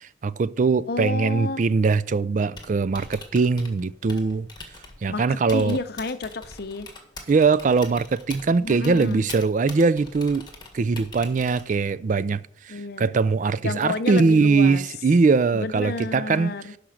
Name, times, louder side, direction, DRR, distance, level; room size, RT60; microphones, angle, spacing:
voice 1, 0.0-4.5 5.0-5.8 7.3-10.5 10.7-16.5, right 4 dB, 40° right, 0.3 m, -21 dB
voice 2, 0.9-1.6 5.1-6.9 8.6-9.3 12.7-13.2 13.6-14.8 15.5-16.7, left 3 dB, 55° left, 0.7 m, -30 dB
Typing, 2.5-12.0, left 3 dB, 20° left, 1.6 m, -43 dB
11.5 x 5.1 x 6.4 m
head